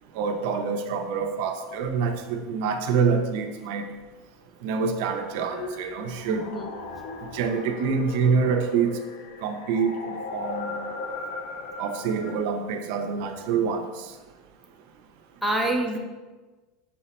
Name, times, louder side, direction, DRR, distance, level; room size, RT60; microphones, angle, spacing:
voice 1, 0.1-3.9 4.6-6.5 7.3-8.9 9.4-10.8 11.8-13.9, right 5 dB, 70° right, 5 dB, 0.4 m, -26 dB
sound 1, 5.5-12.4, left 3 dB, 80° left, 0.5 m, -37 dB
voice 2, 6.3-6.7 15.4-16.0, right 1 dB, ahead, 0 dB, 0.5 m, -26 dB
5.6 x 2.0 x 4.1 m, 1.3 s
supercardioid pair, 130°, 0 cm